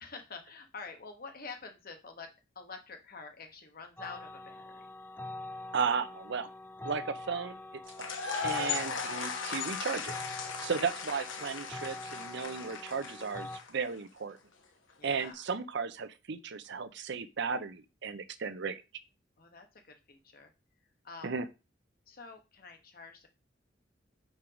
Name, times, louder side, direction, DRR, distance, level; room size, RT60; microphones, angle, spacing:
voice 1, 0.0-4.9 10.4-10.8 15.0-15.4 19.4-20.5 21.0-21.3 22.1-23.3, left 4 dB, 50° left, 4 dB, 1.4 m, -47 dB
sound 1, 4.0-13.6, left 2 dB, 10° left, 0.5 m, -45 dB
voice 2, 5.7-6.5 6.8-7.6 8.0-10.1 10.6-14.4 15.0-18.8 21.2-21.5, right 5 dB, 65° right, 11 dB, 0.7 m, -35 dB
sound 2, 7.9-13.9, left 5 dB, 80° left, 1.2 m, -37 dB
5.5 x 4.6 x 5.0 m, 0.28 s
head